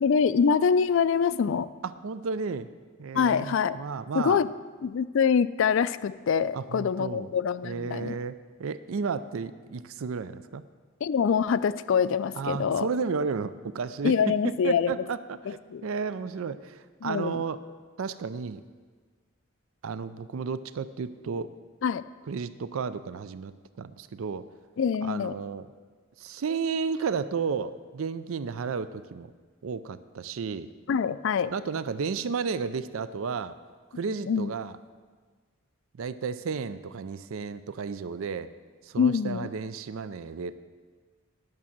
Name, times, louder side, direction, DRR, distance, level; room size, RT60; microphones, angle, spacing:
voice 1, 0.0-1.7 3.1-3.8 4.1-4.5 4.8-8.2 11.0-12.9 14.0-15.0 15.5-15.8 17.0-17.4 21.8-22.0 24.8-25.3 30.9-31.5 34.3-34.5 39.0-39.5, left 6 dB, 60° left, 15 dB, 0.3 m, -25 dB
voice 2, 1.8-2.7 3.0-4.4 6.5-7.3 7.6-10.6 12.4-17.6 18.0-18.6 19.8-21.5 22.3-24.5 25.0-25.7 26.2-29.3 29.6-30.7 31.5-33.5 33.9-34.8 35.9-38.5 38.8-40.6, right 5 dB, 70° right, 14 dB, 0.4 m, -33 dB
11.0 x 6.2 x 7.3 m, 1.4 s
head